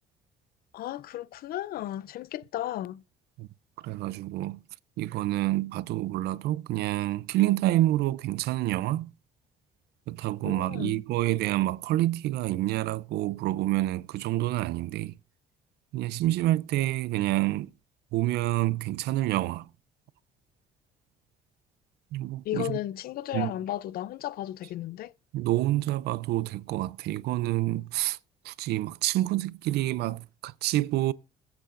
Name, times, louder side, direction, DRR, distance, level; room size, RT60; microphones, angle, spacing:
voice 1, 0.7-3.0 10.4-11.0 22.4-25.1, left 13 dB, 60° left, 0.5 m, -34 dB
voice 2, 3.8-4.6 5.0-9.1 10.1-15.1 15.9-17.7 18.1-19.7 22.1-22.8 23.3-23.5 25.3-28.2 28.4-31.1, right 15 dB, 75° right, 0.5 m, -28 dB
21.0 x 8.2 x 2.5 m
cardioid pair, 110°, 17 cm